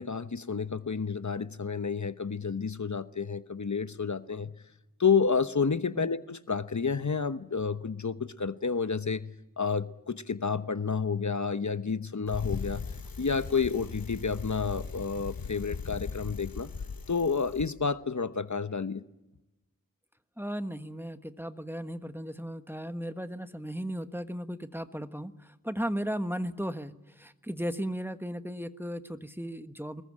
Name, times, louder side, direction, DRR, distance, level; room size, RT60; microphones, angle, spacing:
voice 1, 0.0-4.5 5.0-12.8 13.2-16.7 17.1-19.0, left 5 dB, 55° left, 1.0 m, -30 dB
Bicycle, 12.3-17.7, left 5 dB, 85° left, 1.1 m, -39 dB
voice 2, 20.4-30.0, equal, 5° right, 1.4 m, -36 dB
25.0 x 21.5 x 8.7 m
wide cardioid pair, 50°, 34 cm